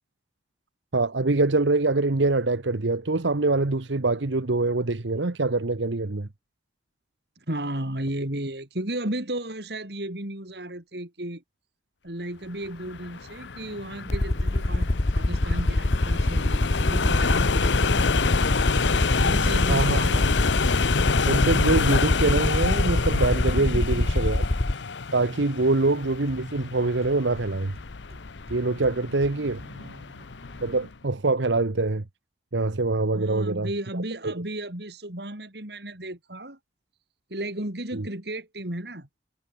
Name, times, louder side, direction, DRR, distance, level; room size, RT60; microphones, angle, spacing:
voice 1, 0.9-6.3 19.7-20.1 21.3-24.4 25.1-27.7 28.5-29.6 30.6-32.0 32.5-33.7 34.2-34.3 37.9-38.1, right 3 dB, 90° right, 1.1 m, -24 dB
voice 2, 7.4-11.4 12.0-18.2 19.2-20.2 23.6-24.4 29.3-30.6 33.1-36.6 37.3-39.1, right 1 dB, 65° right, 4.3 m, -34 dB
sound 1, 12.6-30.9, left 5 dB, 80° left, 0.9 m, -28 dB
Aircraft, 14.1-24.7, left 2 dB, 40° left, 0.8 m, -24 dB
sound 2, 24.8-25.3 25.5-29.9, equal, 35° right, 7.5 m, -52 dB
head